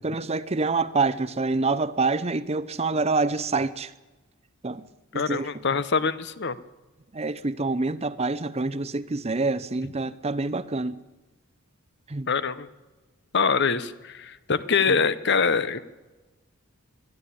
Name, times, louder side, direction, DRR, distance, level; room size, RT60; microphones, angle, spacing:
voice 1, 0.0-3.9 4.6-4.8 5.1-5.5 7.1-11.0 12.1-12.3, right 3 dB, 30° right, 0.7 m, -26 dB
voice 2, 5.1-6.6 12.3-12.7 13.3-15.8, left 5 dB, 55° left, 0.9 m, -24 dB
23.0 x 13.0 x 8.6 m
head